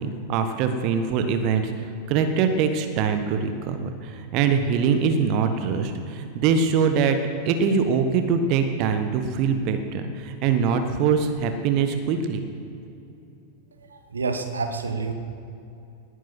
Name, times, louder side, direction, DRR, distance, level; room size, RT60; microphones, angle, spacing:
voice 1, 0.0-7.2 7.4-12.4, right 6 dB, 40° right, 7 dB, 1.2 m, -23 dB
voice 2, 13.8-15.1, right 4 dB, 70° right, 7 dB, 1.4 m, -29 dB
18.5 x 9.9 x 6.0 m, 2.8 s
figure-of-eight pair, 90°, 0 cm